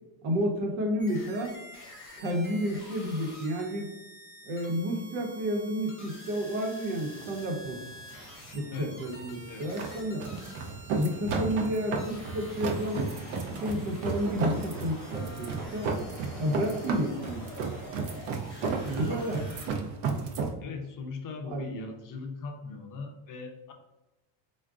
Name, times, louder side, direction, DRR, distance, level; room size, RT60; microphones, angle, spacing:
voice 1, 0.2-1.6 2.2-3.9 4.5-7.8 8.5-10.2 10.9-13.0 13.6-16.0 16.4-17.4 18.9-19.4 21.4-21.8, equal, 85° right, 1 dB, 0.9 m, -31 dB
sound 1, 1.0-19.7, left 1 dB, 25° left, 0.9 m, -47 dB
sound 2, 7.2-20.5, right 4 dB, 65° right, 0.6 m, -34 dB
sound 3, 13.5-13.9 15.1-15.2 15.6-16.4 17.0-17.5 19.1-19.5, right 2 dB, 20° right, 0.7 m, -47 dB
voice 2, 20.6-23.7, left 4 dB, 45° left, 4 dB, 0.5 m, -39 dB
3.5 x 2.3 x 2.4 m, 1.0 s
cardioid pair, 140°, 49 cm